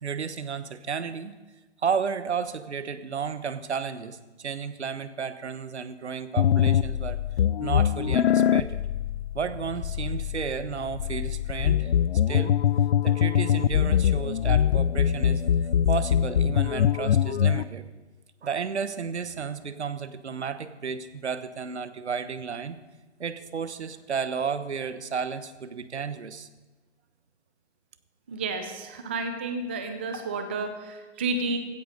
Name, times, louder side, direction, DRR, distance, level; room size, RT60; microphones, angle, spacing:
voice 1, 0.0-1.4 1.8-7.2 7.6-8.8 9.3-11.9 12.3-12.6 13.0-15.4 15.9-17.9 18.4-22.8 23.2-26.5, right 6 dB, 70° right, 12 dB, 1.2 m, -32 dB
sound 1, 6.4-17.6, left 9 dB, 60° left, 0.5 m, -23 dB
voice 2, 28.3-31.6, right 3 dB, 10° right, 8 dB, 0.3 m, -31 dB
16.0 x 16.0 x 4.0 m, 1.2 s
figure-of-eight pair, 130°, 35 cm